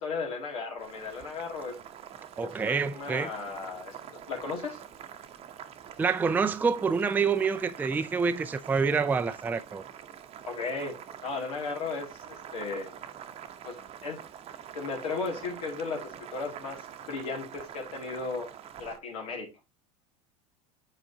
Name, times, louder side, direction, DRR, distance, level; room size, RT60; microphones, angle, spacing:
voice 1, 0.0-1.8 2.4-4.8 10.5-12.9 13.6-14.2 14.7-18.5 18.8-19.5, left 4 dB, 85° left, 2.3 m, -36 dB
Boiling, 0.8-19.0, right 9 dB, 35° right, 0.8 m, -46 dB
voice 2, 2.4-3.3 6.0-9.8, right 5 dB, 10° right, 0.4 m, -27 dB
7.5 x 4.9 x 2.7 m
supercardioid pair, 115°, 18 cm